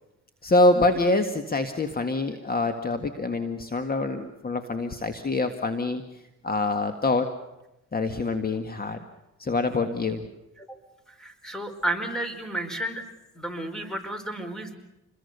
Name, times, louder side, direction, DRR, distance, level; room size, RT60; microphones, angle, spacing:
voice 1, 0.4-6.0 6.4-7.3 7.9-9.0 9.4-10.2, left 2 dB, 30° left, 8 dB, 1.9 m, -25 dB
voice 2, 11.2-13.0 13.4-14.8, right 1 dB, ahead, 8 dB, 4.7 m, -31 dB
28.0 x 22.0 x 6.8 m, 0.95 s
cardioid pair, 90°, 30 cm